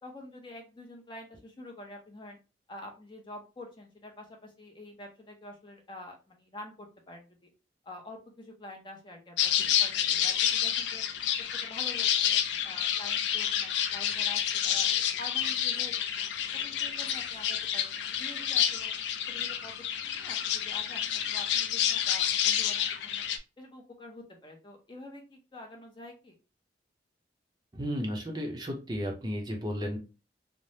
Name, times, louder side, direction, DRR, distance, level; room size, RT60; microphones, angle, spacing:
voice 1, 0.0-2.4 2.7-7.5 7.8-9.5 9.8-11.0 11.5-14.9 15.2-16.3 16.6-18.9 19.3-19.8 20.1-23.3 23.6-26.4, left 1 dB, 25° left, 1 dB, 0.6 m, -47 dB
sound 1, 9.4-23.4, left 9 dB, 80° left, 0.3 m, -29 dB
voice 2, 27.7-30.0, equal, 25° right, 0 dB, 0.5 m, -33 dB
3.2 x 2.0 x 2.6 m, 0.31 s
head